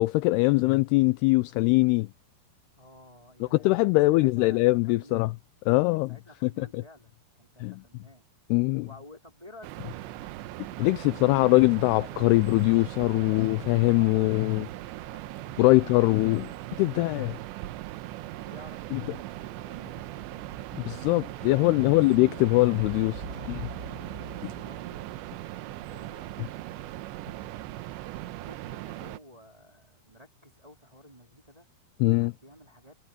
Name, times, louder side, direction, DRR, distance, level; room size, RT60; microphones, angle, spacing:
voice 1, 0.0-2.1 3.4-5.3 5.7-6.2 6.6-6.8 7.6-7.8 8.5-8.9 10.8-14.7 15.6-16.5 16.8-17.4 18.9-19.0 20.7-23.6 32.0-32.3, left 22 dB, 90° left, 2.3 m, -22 dB
voice 2, 2.8-5.4 5.9-8.3 8.8-10.3 15.7-16.1 18.4-20.5 21.8-22.5 23.3-25.0 25.6-26.3 26.9-27.7 28.1-31.7 32.1-33.0, left 1 dB, 10° right, 2.1 m, -53 dB
sound 1, 9.6-29.2, right 16 dB, 90° right, 3.1 m, -39 dB
sound 2, 20.1-25.2, right 2 dB, 25° right, 2.2 m, -45 dB
omnidirectional pair, 5.1 m